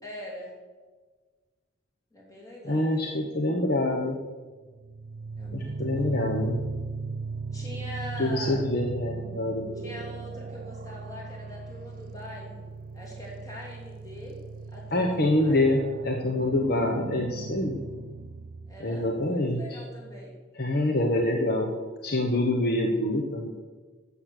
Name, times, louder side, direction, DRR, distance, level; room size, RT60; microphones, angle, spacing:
voice 1, 0.0-0.5 2.1-3.2 5.4-6.2 7.5-8.6 9.8-12.7 12.9-14.4 14.7-15.7 18.7-20.3, left 1 dB, 20° left, -3 dB, 3.2 m, -42 dB
voice 2, 2.6-4.2 5.5-6.6 8.2-9.6 14.9-17.8 18.8-19.8 20.5-21.8 22.0-23.5, left 1 dB, 55° left, 1 dB, 1.1 m, -26 dB
sound 1, 4.7-19.3, right 4 dB, 45° right, 0.4 m, -37 dB
12.5 x 8.6 x 6.6 m, 1.4 s
head